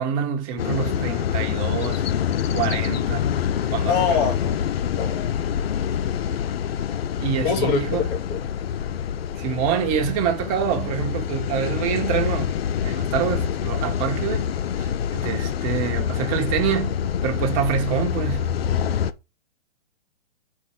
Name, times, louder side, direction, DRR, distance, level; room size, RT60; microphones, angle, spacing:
voice 1, 0.0-2.0 2.5-3.3 3.7-4.3 7.2-8.1 9.4-12.5 12.8-14.5 14.8-18.4, right 8 dB, 35° right, 1.2 m, -26 dB
sound 1, 0.6-19.1, left 8 dB, 65° left, 0.6 m, -26 dB
voice 2, 3.9-4.7 5.0-5.4 7.4-8.4, left 7 dB, 35° left, 1.8 m, -25 dB
4.5 x 4.5 x 4.9 m
hypercardioid pair, 125°, 33 cm